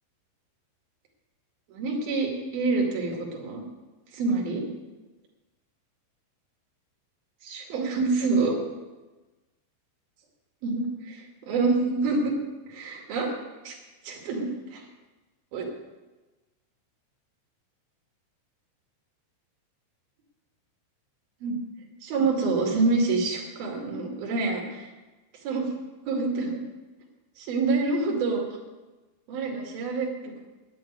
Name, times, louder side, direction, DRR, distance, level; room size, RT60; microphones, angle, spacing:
voice 1, 1.7-3.6 4.1-4.6 7.4-8.5 10.6-12.3 12.7-13.3 13.6-13.8 14.0-14.8 15.5-15.6 21.4-21.6 22.0-24.9 25.4-25.7 26.0-26.6 27.4-28.5 29.3-30.4, right 3 dB, 55° right, 0 dB, 3.8 m, -27 dB
11.5 x 8.5 x 9.3 m, 1.2 s
omnidirectional pair, 5.5 m